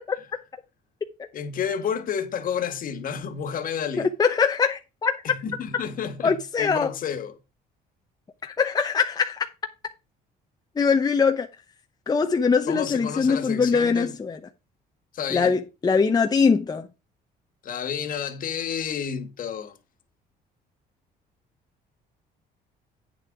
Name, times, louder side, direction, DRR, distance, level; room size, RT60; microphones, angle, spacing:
voice 1, 1.3-4.1 5.2-7.3 12.7-14.1 15.1-15.6 17.6-19.8, left 7 dB, 55° left, 1.7 m, -30 dB
voice 2, 4.2-5.2 6.2-6.9 8.4-9.5 10.8-11.5 12.1-14.4 15.3-16.9, left 5 dB, 25° left, 0.8 m, -22 dB
8.8 x 6.5 x 4.7 m
cardioid pair, 110°, 17 cm